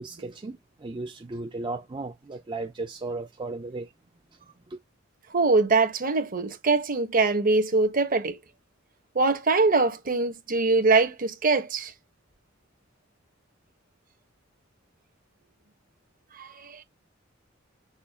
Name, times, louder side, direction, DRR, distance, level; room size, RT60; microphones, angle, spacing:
voice 1, 0.0-3.9, right 3 dB, 25° right, 0.4 m, -35 dB
voice 2, 5.3-8.4 9.1-11.9 16.4-16.8, right 3 dB, 45° right, 1.1 m, -23 dB
6.2 x 2.3 x 3.5 m
head